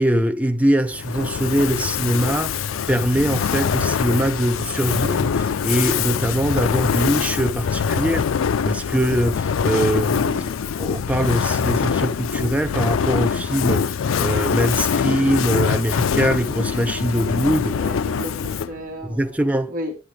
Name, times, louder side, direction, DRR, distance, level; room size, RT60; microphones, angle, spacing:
voice 1, 0.0-8.3 8.6-17.8 19.0-19.7, right 1 dB, 5° right, 0.6 m, -22 dB
Fire, 0.9-18.8, left 6 dB, 85° left, 0.4 m, -23 dB
voice 2, 17.7-19.4 19.7-20.0, left 1 dB, 40° right, 1.5 m, -33 dB
10.0 x 7.9 x 3.4 m
head